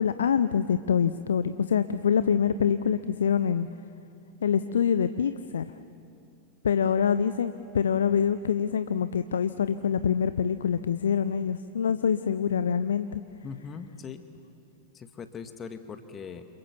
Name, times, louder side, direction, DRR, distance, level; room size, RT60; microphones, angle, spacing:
voice 1, 0.0-3.7 4.4-5.7 6.6-13.2, left 7 dB, 65° left, 13 dB, 0.7 m, -25 dB
voice 2, 13.4-14.2 14.9-16.5, left 6 dB, 25° left, 8 dB, 1.7 m, -40 dB
28.5 x 28.0 x 7.1 m, 2.7 s
figure-of-eight pair, 90°, 0 cm